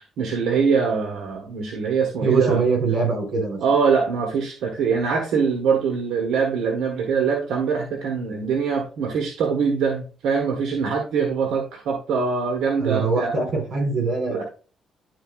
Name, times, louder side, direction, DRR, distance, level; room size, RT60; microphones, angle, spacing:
voice 1, 0.2-2.6 3.6-13.3 14.3-14.4, right 5 dB, 80° right, 1 dB, 1.4 m, -23 dB
voice 2, 2.2-3.6 12.8-14.4, right 4 dB, 60° right, 3 dB, 3.9 m, -22 dB
11.5 x 4.2 x 2.5 m, 0.37 s
cardioid pair, 90°, 0 cm